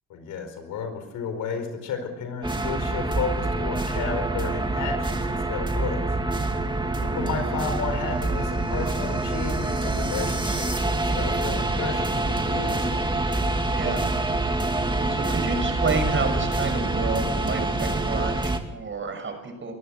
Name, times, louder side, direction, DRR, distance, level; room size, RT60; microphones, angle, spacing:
voice 1, 0.1-6.0 6.3-6.4 7.0-13.1, left 5 dB, 85° left, 7 dB, 4.8 m, -33 dB
sound 1, 2.4-18.6, right 2 dB, 15° right, 2.3 m, -26 dB
voice 2, 7.1-7.4 13.7-14.0 15.1-19.7, right 4 dB, 40° right, 6 dB, 6.5 m, -30 dB
23.0 x 15.0 x 8.0 m, 1.1 s
cardioid pair, 90°, 30 cm